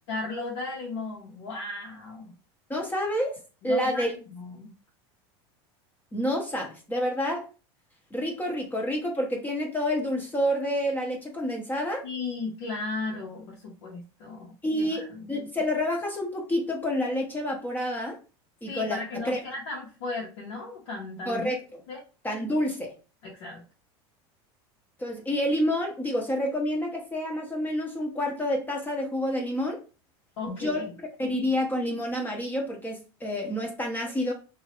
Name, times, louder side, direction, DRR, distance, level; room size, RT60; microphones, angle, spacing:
voice 1, 0.1-2.3 3.6-4.7 12.0-15.5 18.7-21.5 21.9-22.0 23.2-23.6 30.4-30.9, left 3 dB, 75° left, -5 dB, 1.0 m, -36 dB
voice 2, 2.7-3.4 3.6-4.1 6.1-7.5 8.1-12.0 14.6-18.2 18.6-19.0 19.2-19.4 21.3-21.6 22.2-22.9 25.0-29.8 30.5-30.8 31.2-34.3, left 1 dB, 15° left, 0 dB, 0.7 m, -28 dB
2.9 x 2.4 x 2.9 m, 0.34 s
supercardioid pair, 115°, 14 cm